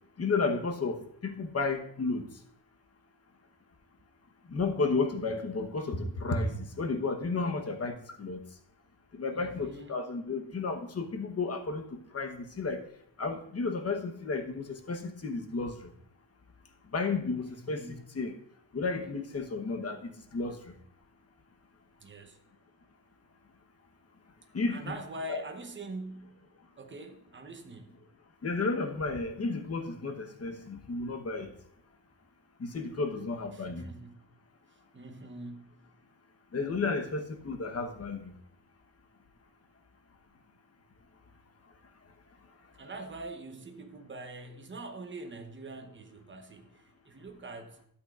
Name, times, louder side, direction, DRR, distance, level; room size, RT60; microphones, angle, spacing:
voice 1, 0.2-2.3 4.5-8.4 9.1-12.8 13.2-15.9 16.9-17.8 18.1-18.3 18.7-20.7 24.5-24.9 25.3-25.4 28.4-31.5 32.6-33.9 36.5-38.3, left 3 dB, 35° left, 1.0 m, -32 dB
voice 2, 9.3-10.0 17.5-18.0 22.0-22.4 24.7-26.5 26.8-28.0 33.5-34.3 34.7-35.9 42.7-47.8, right 2 dB, 25° right, 0.9 m, -44 dB
12.5 x 8.3 x 2.4 m
wide cardioid pair, 140°, 45 cm